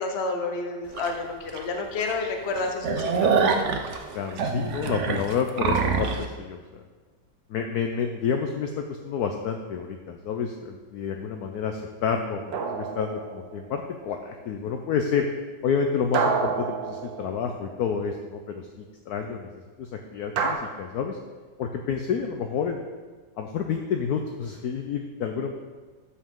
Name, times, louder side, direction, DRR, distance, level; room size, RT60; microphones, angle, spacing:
voice 1, 0.0-3.3, left 3 dB, 45° left, 3 dB, 1.0 m, -30 dB
sound 1, 1.0-1.1 1.6-1.7 2.0-2.1 2.5-6.2, right 5 dB, 60° right, 0.7 m, -25 dB
voice 2, 4.1-6.8 7.5-15.3 15.6-19.5 19.8-21.2 21.6-22.8 23.4-25.5, left 6 dB, 70° left, 4 dB, 1.0 m, -29 dB
sound 2, 12.5-13.7 16.1-17.8 20.4-20.5, right 5 dB, 80° right, 1.5 m, -28 dB
13.0 x 5.6 x 3.7 m, 1.4 s
omnidirectional pair, 2.0 m